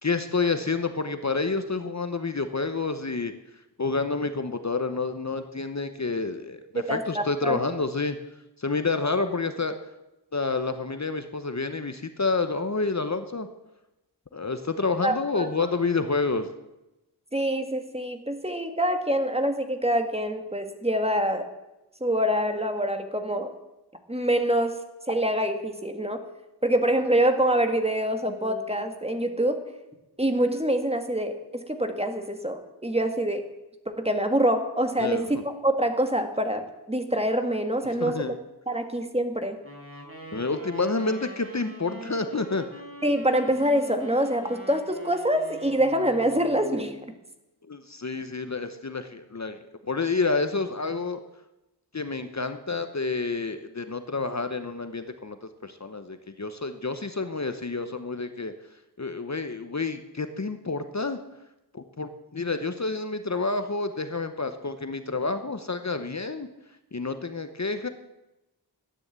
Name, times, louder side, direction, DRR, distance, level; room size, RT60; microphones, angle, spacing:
voice 1, 0.0-3.3 3.8-8.2 8.6-9.7 10.3-13.5 14.3-16.5 35.0-35.3 37.8-38.4 40.3-42.6 47.7-49.6 49.9-51.2 51.9-55.4 55.6-58.5 59.0-61.2 61.7-66.5 66.9-67.9, left 3 dB, 40° left, 9 dB, 0.9 m, -29 dB
voice 2, 6.7-7.6 15.0-15.5 17.3-21.5 22.0-23.5 24.1-24.7 25.1-26.2 26.6-29.6 30.2-33.5 33.8-38.3 38.7-39.6 43.0-47.0, right 1 dB, 15° right, 6 dB, 1.7 m, -25 dB
Wind instrument woodwind instrument, 39.6-47.1, right 1 dB, 30° right, 4.1 m, -43 dB
13.0 x 9.9 x 8.1 m, 0.97 s
wide cardioid pair, 65°, 42 cm